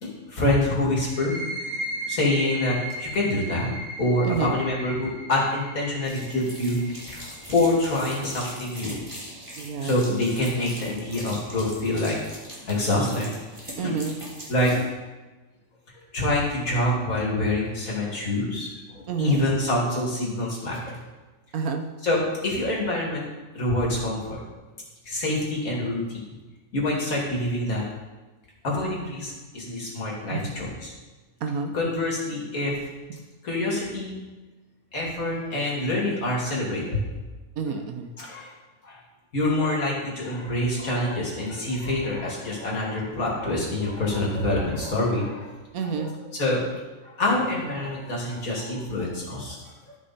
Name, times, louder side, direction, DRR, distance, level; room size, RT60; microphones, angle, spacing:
voice 1, 0.0-1.8 2.1-3.7 4.0-9.0 9.8-12.2 12.7-13.4 13.8-13.9 14.5-14.8 16.1-21.0 22.0-23.2 23.5-24.4 25.1-26.2 26.7-27.8 28.6-30.9 31.7-32.8 33.4-34.2 34.9-37.0 38.2-38.5 38.8-39.0 39.3-45.5 46.4-46.7 47.0-49.6, left 1 dB, 80° left, -4 dB, 2.8 m, -26 dB
sound 1, 1.0-8.4, right 1 dB, 55° right, 2.7 m, -36 dB
voice 2, 4.2-4.6 9.6-10.1 13.8-14.2 19.1-19.4 21.5-21.9 30.3-30.5 31.4-31.7 33.1-33.2 37.6-38.1 45.7-46.2, right 5 dB, 85° right, 5 dB, 1.4 m, -29 dB
sound 2, 6.0-14.8, equal, 20° right, 2.2 m, -40 dB
13.0 x 5.3 x 4.2 m, 1.2 s
omnidirectional pair, 1.5 m